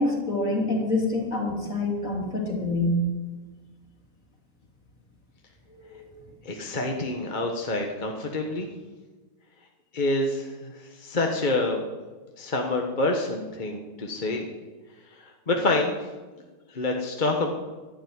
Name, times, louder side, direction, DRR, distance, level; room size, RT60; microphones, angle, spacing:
voice 1, 0.0-3.0 5.9-6.1, left 2 dB, 45° left, -1 dB, 3.5 m, -26 dB
voice 2, 6.4-8.7 9.9-11.8 12.4-14.5 15.2-16.0 16.7-17.5, left 2 dB, 30° left, 1 dB, 1.3 m, -27 dB
12.0 x 12.0 x 9.6 m, 1.3 s
omnidirectional pair, 1.9 m